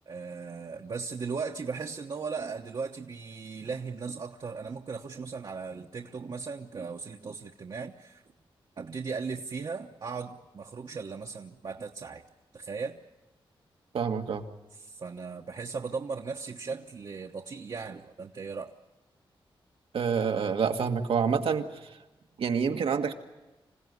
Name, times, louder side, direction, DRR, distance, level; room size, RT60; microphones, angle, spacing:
voice 1, 0.1-8.2 8.8-12.2 12.5-13.0 14.7-18.7, right 5 dB, 55° right, 2 dB, 1.1 m, -37 dB
voice 2, 13.9-14.4 19.9-21.7 22.4-23.1, right 6 dB, 85° right, 5 dB, 1.7 m, -27 dB
27.0 x 16.5 x 9.6 m, 1.1 s
wide cardioid pair, 90°, 9 cm